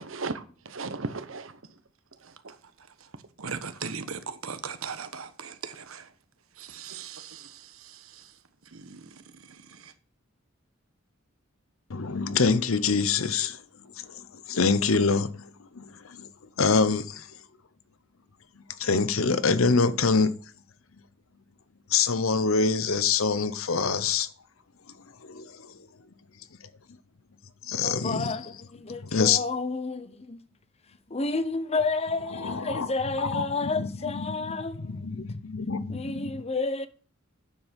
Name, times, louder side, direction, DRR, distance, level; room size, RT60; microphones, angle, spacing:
voice 1, 0.0-1.8 2.1-2.5, right 3 dB, 70° right, 1.1 m, -36 dB
voice 2, 3.4-6.0 6.6-7.6 8.7-9.0 9.8-9.9, right 6 dB, 90° right, 1.2 m, -38 dB
voice 3, 11.9-13.6 14.0-15.5 15.7-16.3 16.6-17.3 18.8-20.3 21.9-24.3 25.2-25.7 27.6-28.3 29.1-29.4 32.3-32.9 33.2-33.9 34.1-34.3 34.8-36.3, left 4 dB, 80° left, 0.8 m, -25 dB
voice 4, 27.8-30.4 31.1-35.2 35.9-36.9, left 3 dB, 30° left, 0.8 m, -31 dB
9.5 x 7.2 x 5.2 m
head